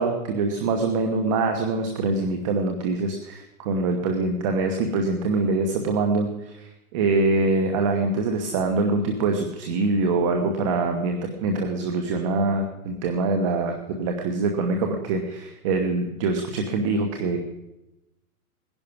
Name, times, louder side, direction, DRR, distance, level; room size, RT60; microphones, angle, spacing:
voice 1, 0.0-6.3 6.5-17.4, right 3 dB, 20° right, 4 dB, 1.0 m, -24 dB
19.0 x 10.5 x 5.8 m, 0.93 s
hypercardioid pair, 165°, 44 cm